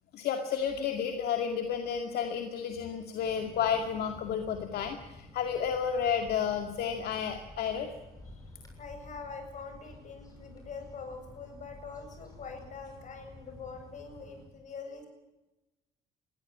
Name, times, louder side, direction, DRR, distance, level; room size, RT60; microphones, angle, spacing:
voice 1, 0.1-7.9, left 7 dB, 70° left, 5 dB, 2.2 m, -31 dB
sound 1, 3.2-14.4, left 2 dB, 20° left, 7.0 m, -51 dB
voice 2, 8.8-15.1, left 4 dB, 45° left, 5 dB, 7.6 m, -44 dB
21.5 x 16.0 x 8.7 m, 1.0 s
cardioid pair, 110°, 17 cm